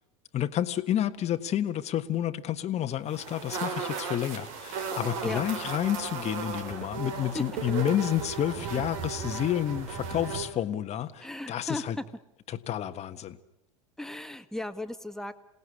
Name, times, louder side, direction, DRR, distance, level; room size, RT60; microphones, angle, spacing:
voice 1, 0.3-12.0 12.5-13.4, left 11 dB, 35° left, 1.4 m, -30 dB
sound 1, 3.1-10.5, right 5 dB, 65° right, 4.0 m, -35 dB
voice 2, 11.2-12.0 14.0-15.3, left 1 dB, ahead, 1.6 m, -36 dB
27.5 x 18.0 x 9.8 m
hypercardioid pair, 85°, 19 cm